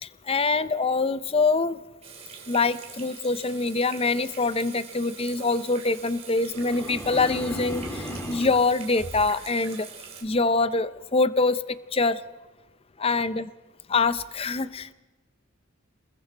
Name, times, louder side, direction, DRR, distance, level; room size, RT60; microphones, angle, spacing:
voice 1, 0.0-1.8 2.5-9.9 10.2-12.2 13.0-13.5 13.9-14.9, left 3 dB, 25° left, 14 dB, 0.6 m, -25 dB
Water tap faucet / Sink (filling or washing), 2.0-10.2, right 6 dB, 30° right, 3.4 m, -44 dB
sound 1, 6.5-8.6, equal, 10° left, 2.8 m, -35 dB
28.0 x 21.0 x 4.5 m, 1.2 s
head